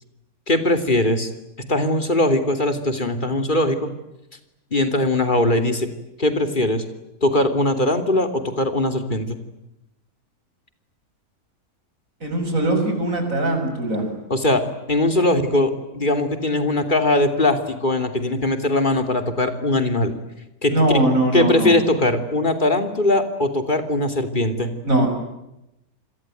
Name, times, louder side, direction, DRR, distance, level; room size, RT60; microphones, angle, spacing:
voice 1, 0.5-1.3 1.7-3.9 4.7-5.9 6.2-6.8 7.2-9.4 14.3-14.6 14.9-20.1 20.6-20.7 21.3-24.7, left 1 dB, 35° left, 8 dB, 3.2 m, -20 dB
voice 2, 12.2-14.1 20.7-21.8 24.8-25.1, right 1 dB, 65° right, 4 dB, 7.2 m, -21 dB
28.0 x 22.0 x 9.2 m, 0.89 s
omnidirectional pair, 1.5 m